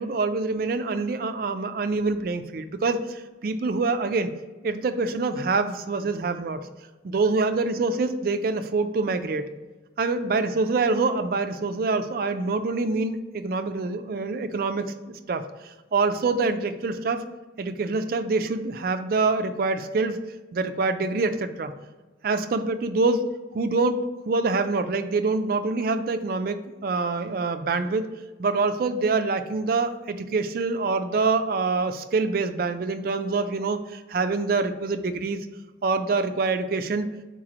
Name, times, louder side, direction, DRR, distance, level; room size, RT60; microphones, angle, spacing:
voice 1, 0.0-4.3 4.6-6.6 7.0-9.5 10.0-17.2 17.6-20.2 20.5-21.7 22.2-28.1 28.4-35.4 35.8-37.1, right 3 dB, 50° right, 9 dB, 0.4 m, -25 dB
4.0 x 3.1 x 3.8 m, 1.2 s
head